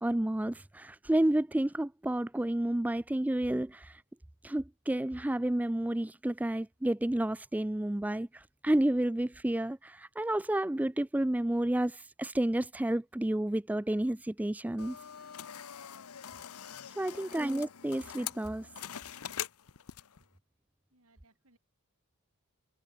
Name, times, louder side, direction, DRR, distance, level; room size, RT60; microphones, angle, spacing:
voice 1, 0.0-4.0 4.4-15.0 17.0-18.7, right 1 dB, 5° right, 0.3 m, -30 dB
sound 1, 14.8-20.2, left 10 dB, 80° left, 0.9 m, -43 dB
voice 2, 17.0-17.4 20.9-21.6, right 3 dB, 75° right, 4.7 m, -64 dB
head